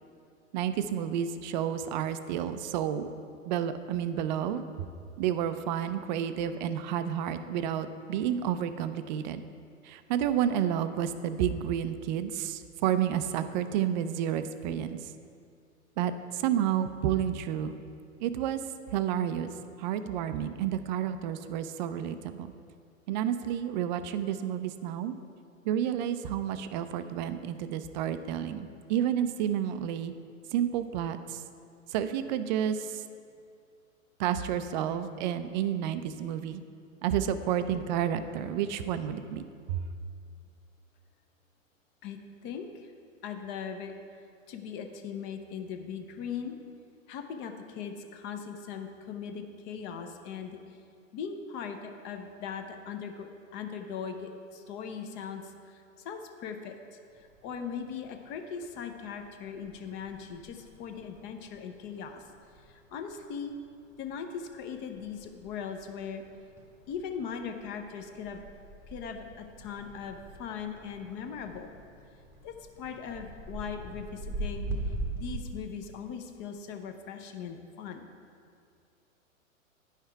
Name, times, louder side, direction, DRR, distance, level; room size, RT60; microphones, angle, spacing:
voice 1, 0.5-3.1 3.5-4.6 5.2-9.4 9.8-15.0 16.0-17.8 18.2-18.6 18.9-19.5 19.8-22.5 23.1-25.1 25.6-30.1 30.5-31.4 31.9-33.0 34.2-36.6 37.0-39.4 39.7-39.8, right 9 dB, 35° right, 11 dB, 0.4 m, -30 dB
voice 2, 42.0-42.9 43.2-43.9 44.5-46.5 47.1-50.8 51.1-62.2 62.6-63.5 64.0-66.3 66.9-68.4 68.9-71.7 72.4-74.8 75.1-78.1, left 7 dB, 30° left, 6 dB, 0.6 m, -39 dB
sound 1, 57.1-75.4, right 2 dB, 5° right, 0.9 m, -43 dB
9.8 x 5.8 x 4.5 m, 2.4 s
hypercardioid pair, 115°, 40 cm